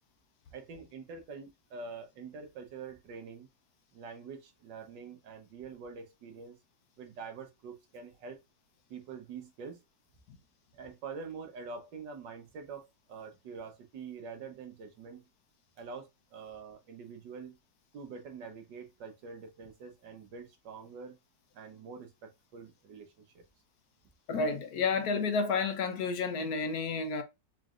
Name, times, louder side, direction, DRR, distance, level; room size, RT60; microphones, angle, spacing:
voice 1, 0.5-3.5 3.9-6.6 7.0-8.4 8.9-9.8 10.7-15.2 15.8-17.6 17.9-21.2 21.5-23.4, right 5 dB, 75° right, 1.7 m, -45 dB
voice 2, 24.3-27.2, left 4 dB, 65° left, 1.1 m, -30 dB
4.6 x 3.2 x 2.4 m
omnidirectional pair, 1.9 m